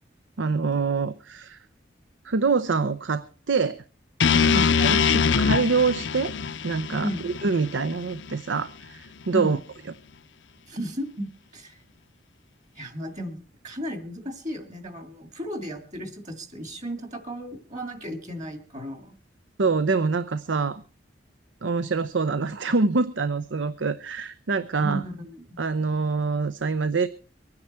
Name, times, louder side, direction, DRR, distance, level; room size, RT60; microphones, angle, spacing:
voice 1, 0.4-1.6 2.2-3.8 4.4-6.3 6.6-9.6 19.6-20.8 21.6-25.0 25.6-27.1, right 4 dB, 90° right, 14 dB, 0.7 m, -25 dB
sound 1, 4.2-8.3, left 6 dB, 85° left, 0.7 m, -23 dB
voice 2, 10.7-11.8 12.8-13.4 13.6-19.1 24.8-25.6, equal, 40° right, 9 dB, 2.3 m, -34 dB
23.5 x 9.8 x 4.3 m, 0.35 s
head